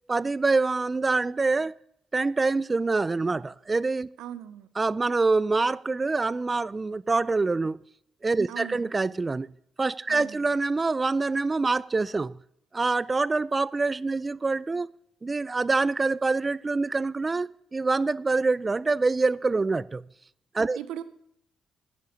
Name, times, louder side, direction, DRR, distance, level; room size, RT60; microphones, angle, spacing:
voice 1, 0.1-1.7 2.1-4.1 4.8-7.8 8.2-9.5 9.8-12.3 12.7-14.9 15.2-20.0 20.5-20.8, right 3 dB, 25° right, 0.3 m, -25 dB
voice 2, 4.2-4.7 8.5-8.9 10.1-10.5 20.8-21.0, right 10 dB, 90° right, 0.7 m, -39 dB
11.0 x 9.6 x 5.3 m
cardioid pair, 100°, 0 cm